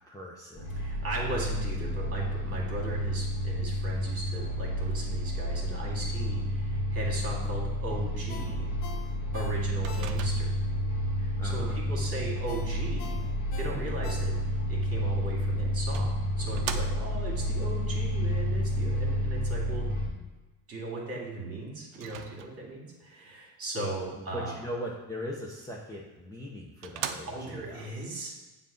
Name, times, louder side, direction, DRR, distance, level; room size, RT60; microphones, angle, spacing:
voice 1, 0.1-0.9 1.1-1.4 11.4-11.8 24.1-27.9, equal, 5° left, -4 dB, 0.7 m, -40 dB
sound 1, 0.6-20.1, equal, 30° left, 1.5 m, -30 dB
voice 2, 0.8-8.7 9.3-10.5 11.2-13.2 13.6-14.4 14.7-19.8 20.7-24.6 27.3-28.3, right 2 dB, 30° right, -2 dB, 2.1 m, -37 dB
Ringtone, 8.3-10.5 10.9-11.0 12.5-14.7 15.1-15.2, left 6 dB, 70° left, 0.8 m, -45 dB
Microwave oven, 9.8-10.7 15.1-15.2 15.9-17.3 21.9-22.8 25.9-26.0 26.5-26.6 26.8-27.7, right 9 dB, 65° right, 0.6 m, -39 dB
7.3 x 2.6 x 5.2 m, 1.2 s
supercardioid pair, 90°, 47 cm